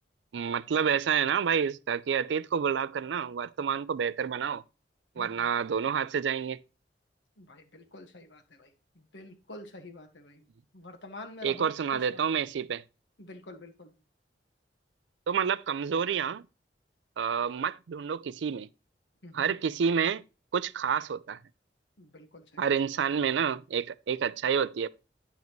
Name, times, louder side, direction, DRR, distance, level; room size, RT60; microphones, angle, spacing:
voice 1, 0.3-4.6 5.2-6.6 11.4-12.8 15.3-16.5 17.2-18.7 19.3-20.2 20.5-21.4 22.6-24.9, right 7 dB, 90° right, 0.4 m, -29 dB
voice 2, 5.1-5.5 7.4-10.4 10.7-12.2 13.2-13.9 19.2-19.5 22.0-22.6, left 2 dB, 85° left, 1.5 m, -47 dB
9.3 x 7.3 x 3.1 m
head